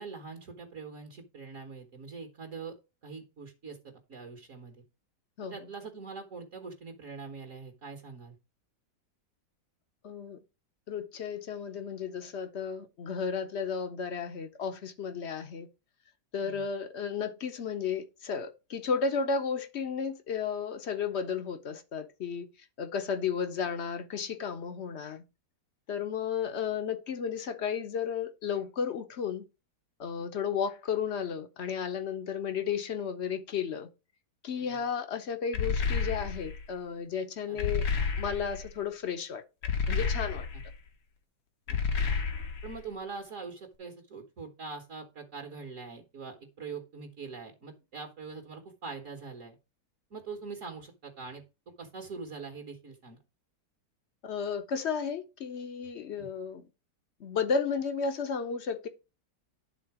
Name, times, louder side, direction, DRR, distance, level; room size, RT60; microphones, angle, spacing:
voice 1, 0.0-2.8 3.0-4.8 5.4-8.4 16.4-16.6 34.6-34.8 37.5-37.7 40.5-40.6 41.7-41.8 42.6-49.6 50.1-51.4 51.8-53.2 56.1-56.3, right 4 dB, 50° right, 1.5 m, -43 dB
voice 2, 10.0-10.4 10.9-15.7 16.3-22.5 22.8-25.2 25.9-29.4 30.0-33.9 34.4-37.8 38.2-39.4 39.9-40.5 54.2-56.6 57.2-58.9, left 6 dB, 50° left, 0.9 m, -33 dB
sound 1, 35.5-36.6 37.6-38.7 39.6-40.7 41.7-42.8, left 5 dB, 85° left, 1.7 m, -30 dB
10.5 x 3.8 x 4.7 m
omnidirectional pair, 1.8 m